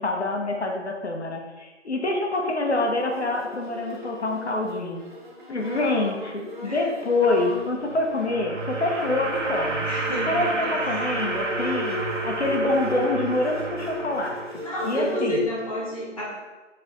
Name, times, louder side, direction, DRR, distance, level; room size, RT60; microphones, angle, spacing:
voice 1, 0.0-5.0 5.5-9.9 10.3-14.4 14.8-15.5, left 2 dB, 65° left, 1 dB, 0.8 m, -26 dB
Bowed string instrument, 2.5-15.5, left 1 dB, 45° right, 0.8 m, -36 dB
voice 2, 6.6-7.0 9.9-11.1 14.6-16.3, equal, 30° left, -7 dB, 0.5 m, -32 dB
sound 1, 7.8-14.9, right 2 dB, 80° right, 0.7 m, -30 dB
4.6 x 3.2 x 2.6 m, 1.2 s
figure-of-eight pair, 155°, 36 cm